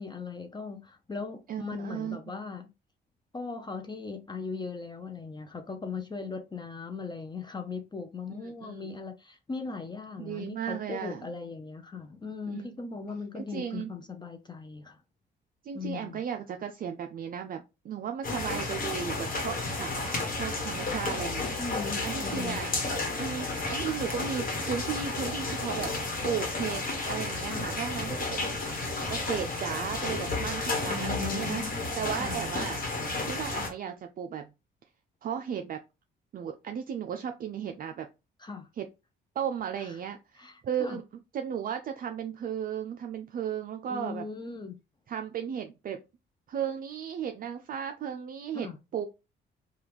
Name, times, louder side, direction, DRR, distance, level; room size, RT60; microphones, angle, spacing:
voice 1, 0.0-2.7 3.3-15.0 15.7-16.2 21.6-22.8 27.5-27.7 30.9-31.8 32.2-32.4 38.4-38.7 39.8-39.9 40.4-41.0 43.9-44.8 48.5-48.8, left 4 dB, 20° left, 0.5 m, -38 dB
voice 2, 1.5-2.3 8.4-9.0 10.2-11.3 12.5-12.7 13.5-13.9 15.6-19.9 20.4-21.6 22.0-22.7 23.2-25.9 26.2-31.6 32.0-32.8 33.2-34.5 35.2-35.8 36.3-38.1 38.8-38.9 39.4-41.0 41.3-44.2 45.1-46.0 46.5-48.7 48.9-49.1, right 8 dB, 45° right, 0.4 m, -35 dB
sound 1, 18.2-33.7, left 3 dB, 45° left, 1.2 m, -32 dB
3.4 x 2.3 x 2.9 m
cardioid pair, 90°, 20 cm